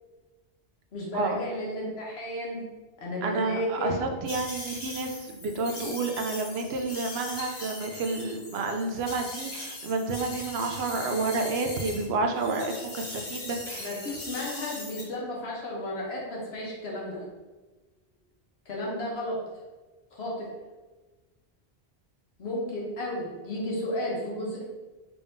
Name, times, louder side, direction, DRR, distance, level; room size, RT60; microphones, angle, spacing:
voice 1, 0.9-2.7 3.0-3.9 13.8-17.2 18.7-19.4 20.1-20.5 22.4-24.6, left 1 dB, 85° left, -3 dB, 1.2 m, -33 dB
voice 2, 3.2-13.9, right 3 dB, 80° right, 4 dB, 0.8 m, -30 dB
sound 1, 4.3-12.1 12.3-15.0, left 2 dB, 65° left, 1.1 m, -40 dB
3.5 x 3.5 x 2.6 m, 1.2 s
omnidirectional pair, 1.0 m